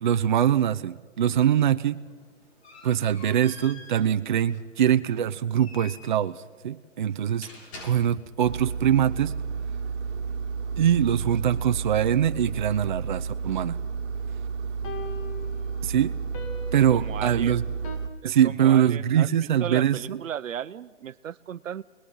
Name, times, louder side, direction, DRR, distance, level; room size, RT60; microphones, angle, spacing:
voice 1, 0.0-2.0 2.8-7.5 7.8-9.3 10.8-13.8 15.8-16.2 16.7-17.6 18.2-20.2, right 10 dB, 40° right, 10 dB, 0.6 m, -23 dB
sound 1, 2.0-8.5, left 2 dB, 55° left, 7.7 m, -47 dB
Engine, 8.4-18.1, right 5 dB, 55° right, 1.6 m, -32 dB
sound 2, 10.6-10.7 14.8-18.0, left 4 dB, 25° left, 1.9 m, -42 dB
voice 2, 16.9-17.6 18.2-21.8, right 9 dB, 80° right, 17 dB, 0.9 m, -36 dB
26.0 x 20.5 x 5.6 m, 1.4 s
hypercardioid pair, 165°, 38 cm